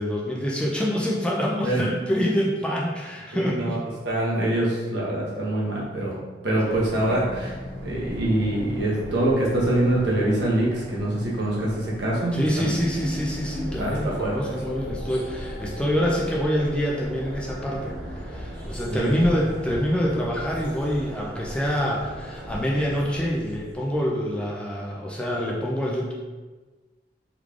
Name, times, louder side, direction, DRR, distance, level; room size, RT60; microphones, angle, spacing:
voice 1, 0.0-3.8 6.7-6.8 12.3-26.1, equal, 5° left, -4 dB, 0.4 m, -26 dB
voice 2, 3.3-6.2 6.4-12.8 13.8-14.6 18.9-19.2, right 1 dB, 75° right, -5 dB, 1.0 m, -25 dB
sound 1, 6.7-23.3, equal, 55° right, 0.6 m, -40 dB
sound 2, 6.8-13.1 13.6-14.2, left 1 dB, 55° left, 0.6 m, -42 dB
sound 3, 12.8-24.3, left 1 dB, 30° left, 1.1 m, -39 dB
3.6 x 3.2 x 2.4 m, 1.3 s
head